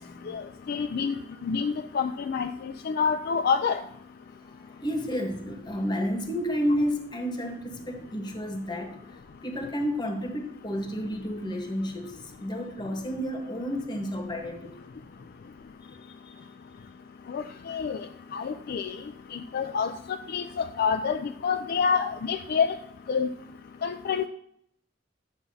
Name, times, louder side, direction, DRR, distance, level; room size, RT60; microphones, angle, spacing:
voice 1, 0.3-3.8 17.3-18.0 18.3-19.0 19.3-19.9 20.3-22.8 23.1-23.3 23.8-24.3, left 6 dB, 55° left, 7 dB, 0.3 m, -28 dB
voice 2, 4.4-14.8 16.0-16.5, equal, 25° left, 3 dB, 1.1 m, -31 dB
10.5 x 7.1 x 2.7 m, 0.71 s
head